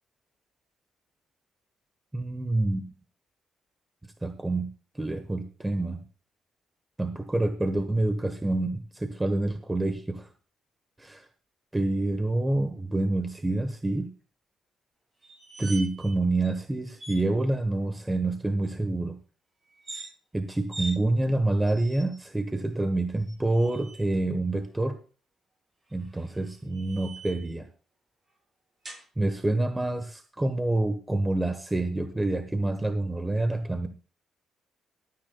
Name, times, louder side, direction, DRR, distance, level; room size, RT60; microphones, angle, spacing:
voice 1, 2.1-2.8 4.2-4.7 5.0-6.0 7.0-10.3 11.0-11.2 11.7-14.1 15.6-19.2 20.3-25.0 25.9-27.7 29.2-33.9, right 2 dB, 15° right, 9 dB, 1.1 m, -27 dB
sound 1, 15.2-16.1 16.4-16.5 17.0-17.2 19.7-20.1 20.7-21.0 21.7-22.2 23.2-24.0 25.9-27.5 28.8-29.1, right 2 dB, 30° right, 7.5 m, -42 dB
22.5 x 9.2 x 2.2 m, 0.36 s
cardioid pair, 90°, 0 cm